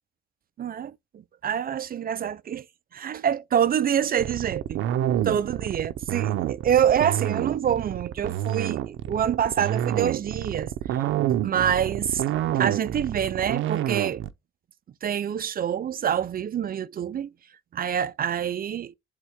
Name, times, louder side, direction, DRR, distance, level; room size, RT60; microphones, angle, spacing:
voice 1, 0.6-0.9 1.4-2.6 2.9-4.8 5.2-11.0 11.4-12.2 12.5-14.2 15.0-17.3 17.7-18.9, right 9 dB, 45° right, 0.6 m, -26 dB
sound 1, 4.2-14.3, right 12 dB, 85° right, 0.7 m, -27 dB
8.1 x 3.6 x 3.5 m
cardioid pair, 90°, 20 cm